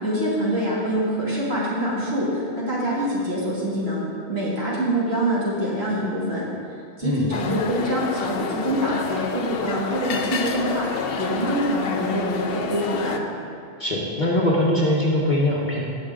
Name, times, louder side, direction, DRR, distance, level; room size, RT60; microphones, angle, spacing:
voice 1, 0.0-4.0 4.3-6.5 7.0-10.8 11.2-13.2, equal, 65° right, -7 dB, 2.7 m, -25 dB
sound 1, 7.3-13.2, left 5 dB, 65° left, 0.8 m, -29 dB
voice 2, 13.8-15.8, left 1 dB, 45° left, -4 dB, 1.3 m, -22 dB
17.5 x 6.1 x 3.7 m, 2.4 s
omnidirectional pair, 1.1 m